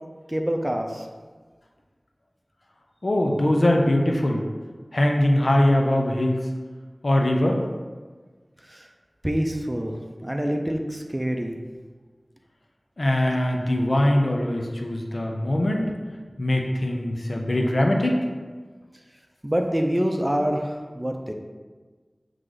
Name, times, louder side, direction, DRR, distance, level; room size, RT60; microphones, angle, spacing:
voice 1, 0.3-1.1 8.7-8.9 9.2-11.6 14.2-14.3 19.4-21.3, equal, 25° right, 3 dB, 0.7 m, -26 dB
voice 2, 3.0-4.4 4.9-6.5 7.0-7.6 13.0-15.9 16.4-18.3, left 1 dB, 70° left, 1 dB, 0.7 m, -22 dB
7.6 x 3.3 x 3.9 m, 1.4 s
wide cardioid pair, 45°, 0 cm